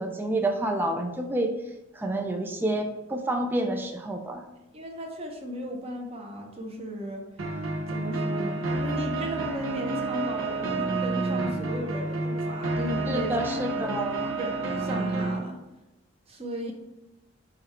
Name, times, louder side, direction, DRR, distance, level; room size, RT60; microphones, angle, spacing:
voice 1, 0.0-1.5 1.9-4.4 13.1-14.3, right 1 dB, 10° right, 3 dB, 0.4 m, -29 dB
voice 2, 4.7-7.3 7.9-13.4 13.7-15.6 16.3-16.7, equal, 30° right, 1 dB, 0.7 m, -35 dB
sound 1, 7.4-15.4, right 3 dB, 80° right, 0.6 m, -29 dB
5.0 x 2.3 x 4.2 m, 0.96 s
head